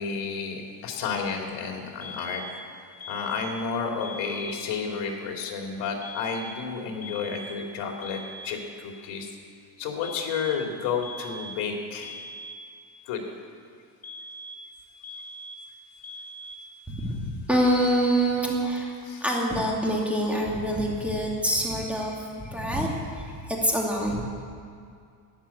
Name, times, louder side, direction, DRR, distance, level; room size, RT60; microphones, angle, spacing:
voice 1, 0.0-2.4 3.1-9.4 9.8-12.2 13.1-13.2 19.1-19.3, left 5 dB, 75° left, 1 dB, 3.0 m, -31 dB
sound 1, 2.0-2.7 3.0-3.7 4.0-4.7 6.0-6.7 7.0-7.7 8.0-8.7 10.0-10.7 11.0-11.7 12.0-12.7 14.0-14.7 15.0-15.7 16.0-16.7, equal, 35° left, 1.6 m, -41 dB
voice 2, 16.9-18.9 19.2-24.2, right 1 dB, 5° right, -2 dB, 2.6 m, -26 dB
13.5 x 10.5 x 8.5 m, 2.3 s
cardioid pair, 130°, 42 cm